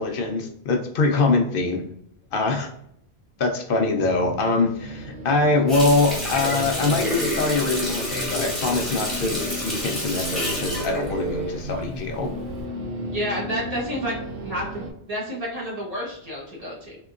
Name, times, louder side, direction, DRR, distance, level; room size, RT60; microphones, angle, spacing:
voice 1, 0.0-1.8 2.3-2.7 3.4-12.3, left 3 dB, 60° left, 4 dB, 0.7 m, -23 dB
sound 1, 4.0-14.9, right 1 dB, 80° right, 0.9 m, -34 dB
Water tap faucet, 5.7-12.1 12.5-12.6, left 1 dB, ahead, 1.1 m, -29 dB
voice 2, 13.1-17.0, equal, 35° right, -4 dB, 1.2 m, -30 dB
3.6 x 2.9 x 2.4 m, 0.71 s
omnidirectional pair, 1.1 m